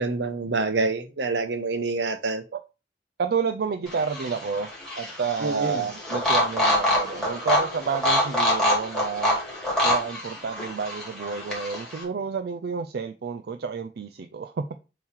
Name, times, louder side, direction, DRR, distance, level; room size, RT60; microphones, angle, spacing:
voice 1, 0.0-2.4 5.4-5.8, right 3 dB, 80° right, 0.9 m, -26 dB
voice 2, 3.2-4.7 5.0-9.4 9.8-14.7, right 5 dB, 60° right, 0.4 m, -30 dB
sound 1, 3.9-12.0, left 1 dB, ahead, 2.4 m, -26 dB
7.2 x 3.2 x 4.3 m
head